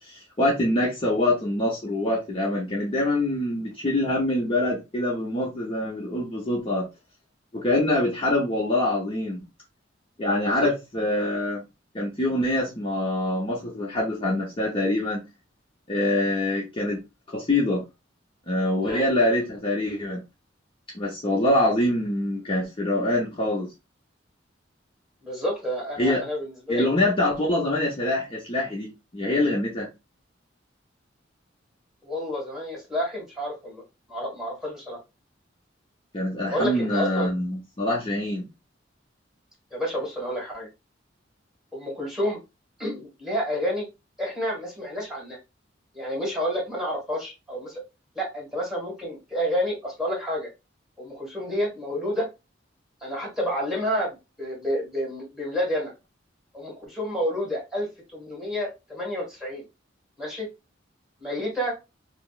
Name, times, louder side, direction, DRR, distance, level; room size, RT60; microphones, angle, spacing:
voice 1, 0.0-6.9 7.5-9.5 10.2-11.6 11.9-15.2 15.9-17.0 17.3-17.9 18.5-20.2 20.9-23.7 26.0-26.2 26.7-29.9 36.1-38.5, left 1 dB, 30° left, 0.8 m, -25 dB
voice 2, 25.2-26.9 32.0-33.8 34.1-35.0 36.5-37.3 39.7-40.7 41.7-42.4 42.8-43.9 44.2-45.4 45.9-47.8 48.1-50.5 51.0-52.3 53.0-55.9 56.5-57.9 58.1-59.6 60.2-60.5 61.2-61.8, equal, 5° right, 1.6 m, -29 dB
4.9 x 2.0 x 2.4 m
head